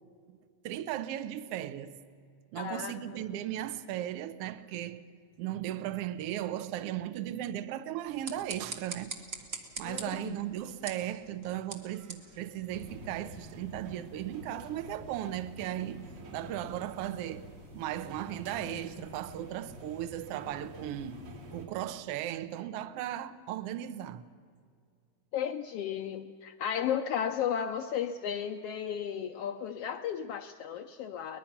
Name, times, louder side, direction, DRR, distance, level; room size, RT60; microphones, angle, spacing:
voice 1, 0.6-2.0 2.5-5.0 5.4-9.1 9.8-16.0 16.3-17.5 17.7-21.2 21.5-24.3, right 12 dB, 70° right, 1.5 m, -36 dB
voice 2, 2.5-3.2 9.8-10.4 25.3-31.4, left 8 dB, 85° left, 1.3 m, -34 dB
sound 1, 8.0-13.3, right 4 dB, 40° right, 1.3 m, -45 dB
sound 2, 12.7-21.7, equal, 90° right, 4.8 m, -47 dB
23.0 x 20.0 x 5.9 m
omnidirectional pair, 3.4 m